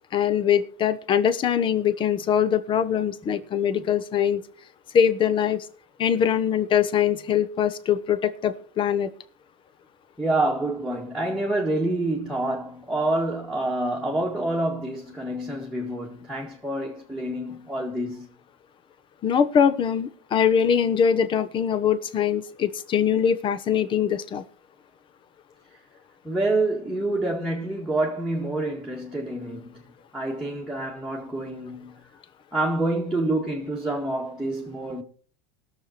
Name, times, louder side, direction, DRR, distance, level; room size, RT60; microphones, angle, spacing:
voice 1, 0.1-4.4 4.9-5.6 6.0-9.1 19.2-24.4, left 8 dB, 30° left, 1.0 m, -22 dB
voice 2, 10.2-18.3 26.2-29.8 30.1-31.9 32.5-35.0, right 2 dB, ahead, 1.8 m, -27 dB
20.0 x 6.9 x 4.3 m
supercardioid pair, 135°, 17 cm